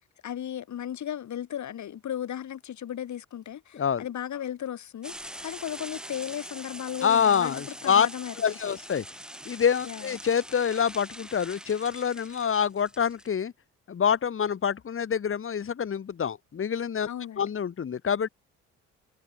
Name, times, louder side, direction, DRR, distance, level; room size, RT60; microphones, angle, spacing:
voice 1, 0.2-5.1 5.4-8.8 9.9-10.1 17.0-17.5, left 10 dB, 60° left, 5.5 m, -36 dB
voice 2, 3.7-4.0 7.0-8.1 8.4-9.0 9.4-13.5 13.9-17.1 17.4-18.3, left 7 dB, 40° left, 1.5 m, -26 dB
sound 1, 5.0-13.3, equal, ahead, 5.3 m, -43 dB
hypercardioid pair, 60°, 32 cm